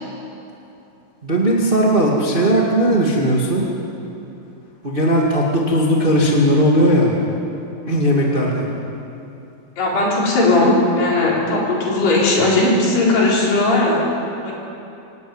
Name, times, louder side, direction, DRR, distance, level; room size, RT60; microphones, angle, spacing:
voice 1, 1.2-3.6 4.8-7.1 7.8-8.7, equal, 20° right, -3 dB, 1.6 m, -17 dB
voice 2, 9.8-14.0 14.4-14.5, left 2 dB, 80° left, -4 dB, 6.3 m, -17 dB
26.0 x 11.5 x 9.7 m, 2.9 s
omnidirectional pair, 4.6 m